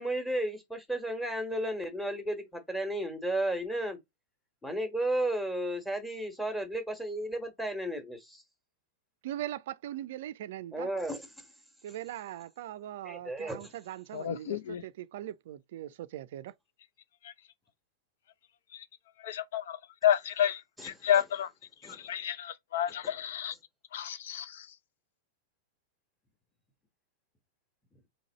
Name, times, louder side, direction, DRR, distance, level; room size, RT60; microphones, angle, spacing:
voice 1, 0.0-4.0 4.6-8.4 10.7-11.4 13.0-13.7 20.8-20.9 21.8-22.0, right 1 dB, 5° left, 1.3 m, -33 dB
voice 2, 9.2-10.9 11.8-16.5, right 12 dB, 50° right, 0.4 m, -40 dB
voice 3, 14.1-14.8 17.2-17.3 18.7-18.8 19.2-21.5 21.8-23.5 23.9-24.7, left 10 dB, 55° left, 0.6 m, -31 dB
3.9 x 2.9 x 4.0 m
figure-of-eight pair, 100°, 0 cm